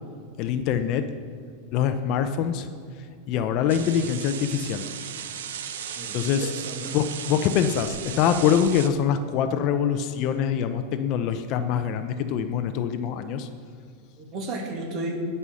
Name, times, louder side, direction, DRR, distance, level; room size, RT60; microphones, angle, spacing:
voice 1, 0.4-1.0 1.7-2.7 3.3-4.8 6.1-6.5 6.9-13.5, left 8 dB, 40° left, 9 dB, 0.6 m, -24 dB
sound 1, 3.7-8.9, right 9 dB, 80° right, 0.8 m, -36 dB
voice 2, 6.0-7.0 14.2-15.2, right 2 dB, 35° right, 1 dB, 2.1 m, -33 dB
16.5 x 5.6 x 6.3 m, 2.3 s
supercardioid pair, 145°, 0 cm